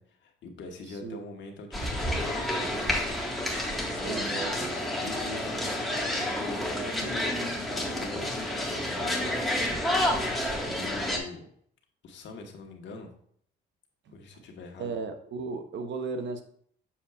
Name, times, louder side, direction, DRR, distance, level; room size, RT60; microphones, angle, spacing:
voice 1, 0.0-2.9 3.8-4.4 5.0-7.4 7.7-9.9 10.7-11.5 12.0-13.1 14.1-14.9, left 3 dB, 65° left, 2 dB, 1.4 m, -43 dB
voice 2, 0.9-1.2 4.0-4.9 14.1-14.2 14.8-16.4, right 4 dB, 65° right, 8 dB, 0.9 m, -36 dB
sound 1, 1.7-11.2, left 1 dB, ahead, 1.7 m, -30 dB
7.2 x 6.7 x 2.4 m, 0.62 s
cardioid pair, 90°, 20 cm